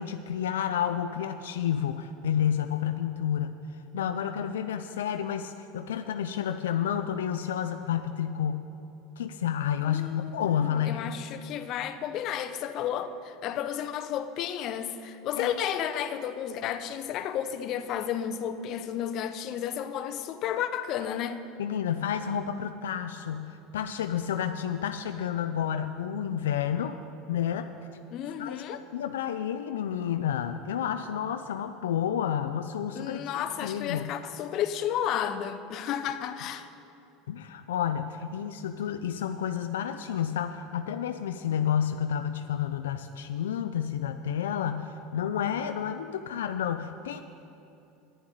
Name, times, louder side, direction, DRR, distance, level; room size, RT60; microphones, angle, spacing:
voice 1, 0.0-3.6 3.9-8.7 9.2-11.1 15.4-15.5 21.6-27.0 27.3-27.7 28.4-34.1 37.3-47.2, left 9 dB, 85° left, 8 dB, 0.4 m, -30 dB
voice 2, 9.9-21.4 28.1-28.8 32.9-36.7, left 9 dB, 55° left, 10 dB, 0.7 m, -32 dB
9.4 x 7.2 x 9.0 m, 2.8 s
hypercardioid pair, 95°, 0 cm